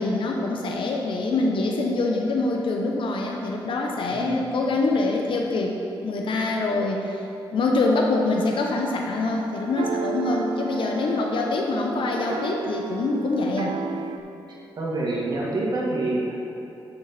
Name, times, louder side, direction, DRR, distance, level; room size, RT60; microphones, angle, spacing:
voice 1, 0.0-5.8 6.0-7.2 7.5-13.8, left 3 dB, 75° left, 0 dB, 0.8 m, -25 dB
voice 2, 4.1-4.5 14.8-16.3, right 2 dB, 55° right, -4 dB, 1.8 m, -27 dB
sound 1, 7.8-14.2, right 5 dB, 70° right, 0.4 m, -34 dB
7.6 x 6.0 x 4.3 m, 2.7 s
cardioid pair, 90°, 9 cm